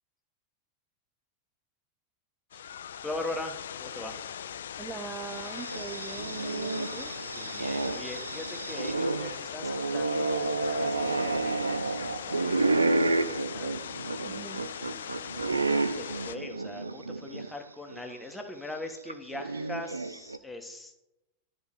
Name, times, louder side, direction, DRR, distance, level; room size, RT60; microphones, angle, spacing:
sound 1, 2.5-16.4, left 9 dB, 65° left, 0.3 m, -40 dB
voice 1, 3.0-4.2 7.3-13.8 15.5-21.0, left 2 dB, 5° left, 3 dB, 1.3 m, -41 dB
voice 2, 4.8-7.1 14.2-14.6, right 5 dB, 15° right, 8 dB, 0.5 m, -42 dB
sound 2, 5.2-17.5 17.9-18.0 19.1-20.4, right 3 dB, 80° right, 0.4 m, -30 dB
12.5 x 4.2 x 3.8 m, 0.92 s
figure-of-eight pair, 90°, 0 cm